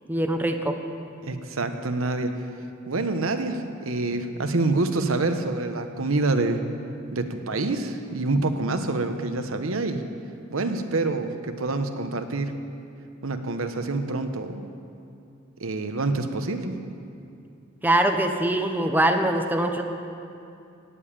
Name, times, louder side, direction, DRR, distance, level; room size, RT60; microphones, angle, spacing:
voice 1, 0.1-0.8 17.8-19.8, right 1 dB, 10° right, 5 dB, 0.8 m, -23 dB
voice 2, 1.2-2.3 2.9-6.6 7.1-10.0 10.5-12.5 13.2-14.7 15.6-16.8, right 2 dB, 80° right, 7 dB, 1.0 m, -26 dB
17.5 x 7.1 x 8.7 m, 2.6 s
head